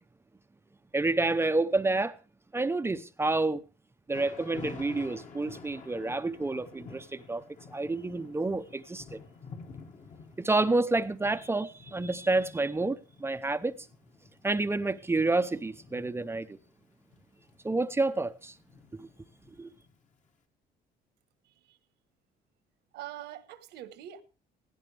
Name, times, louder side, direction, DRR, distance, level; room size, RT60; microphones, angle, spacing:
voice 1, 0.9-2.2 2.5-3.6 4.1-7.4 7.7-9.2 10.4-13.8 14.4-16.6 17.6-18.5 18.9-19.1 19.6-19.7, right 2 dB, 15° right, 0.7 m, -29 dB
Thunder / Rain, 4.1-20.1, left 5 dB, 45° left, 2.1 m, -50 dB
voice 2, 22.9-24.2, right 12 dB, 80° right, 1.4 m, -43 dB
16.5 x 16.5 x 3.4 m
cardioid pair, 110°, 17 cm